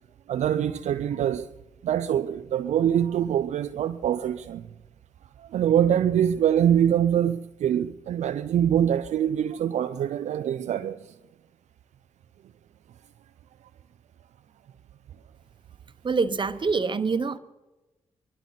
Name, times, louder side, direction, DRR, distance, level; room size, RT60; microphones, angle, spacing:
voice 1, 0.3-1.5 1.8-4.7 5.4-11.1, right 9 dB, 75° right, 0.4 m, -24 dB
voice 2, 16.0-17.4, right 4 dB, 40° right, 1.1 m, -25 dB
24.0 x 12.0 x 4.0 m
supercardioid pair, 50°, 12 cm